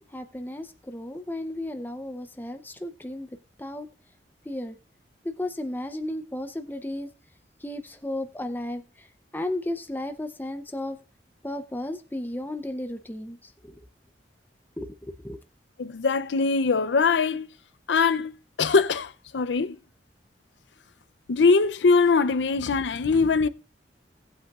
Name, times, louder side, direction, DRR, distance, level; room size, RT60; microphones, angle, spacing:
voice 1, 0.1-3.3 3.6-3.9 4.5-4.8 5.2-7.1 7.6-9.1 9.3-11.0 11.4-13.8 14.8-15.4, left 1 dB, 10° left, 0.6 m, -34 dB
voice 2, 15.8-17.5 17.9-18.3 18.6-19.8 21.3-23.5, left 4 dB, 85° left, 0.5 m, -22 dB
18.0 x 8.2 x 2.4 m
head